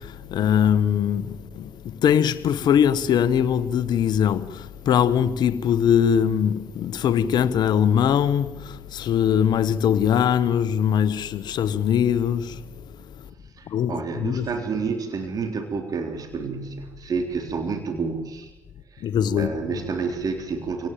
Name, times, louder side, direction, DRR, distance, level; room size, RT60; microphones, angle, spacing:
voice 1, 0.3-1.3 1.6-1.7 2.0-4.6 4.9-8.5 8.9-12.6 13.7-13.9 14.2-14.5 19.0-19.5, left 8 dB, 65° left, 1.3 m, -21 dB
voice 2, 13.6-18.5 18.9-19.1 19.4-20.9, right 5 dB, 50° right, 3.6 m, -29 dB
28.0 x 18.0 x 7.5 m
hypercardioid pair, 50°, 8 cm